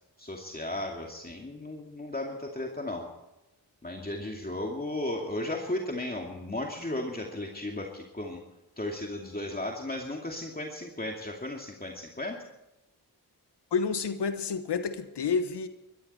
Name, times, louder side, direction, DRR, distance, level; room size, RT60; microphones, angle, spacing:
voice 1, 0.2-3.1 3.8-8.4 8.8-12.4, left 1 dB, 20° left, 0 dB, 2.4 m, -35 dB
voice 2, 13.7-15.7, left 5 dB, 80° left, 10 dB, 1.3 m, -29 dB
23.5 x 13.5 x 4.3 m, 0.95 s
cardioid pair, 45°, 41 cm